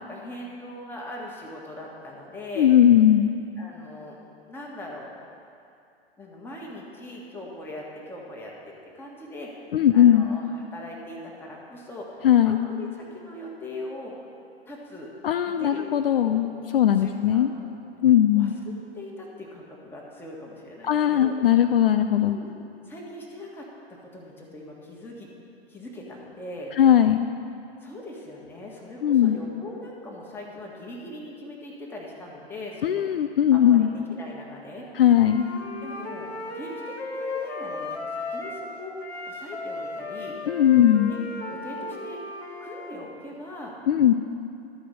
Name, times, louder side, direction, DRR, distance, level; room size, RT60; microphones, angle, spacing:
voice 1, 0.0-2.7 3.6-4.2 4.5-5.1 6.2-10.4 10.7-14.1 14.7-15.1 15.4-15.9 16.1-16.4 17.0-17.6 18.3-18.5 18.9-21.3 22.2-22.5 22.8-25.3 25.7-26.7 27.8-33.0 33.5-34.9 35.8-36.3 36.5-40.4 41.1-41.2 41.5-42.2 42.6-43.7, left 1 dB, 5° left, -3 dB, 1.4 m, -40 dB
voice 2, 2.6-3.3 9.7-10.3 12.2-12.6 15.2-16.5 16.7-17.5 18.0-18.5 20.8-22.4 26.8-27.3 29.0-29.4 32.8-33.9 34.9-35.5 40.5-41.1 43.9-44.1, left 10 dB, 60° left, 8 dB, 0.5 m, -19 dB
Wind instrument woodwind instrument, 35.0-38.7 39.0-42.9, left 2 dB, 80° left, 1.3 m, -36 dB
12.5 x 5.0 x 6.6 m, 2.5 s
figure-of-eight pair, 110°, 32 cm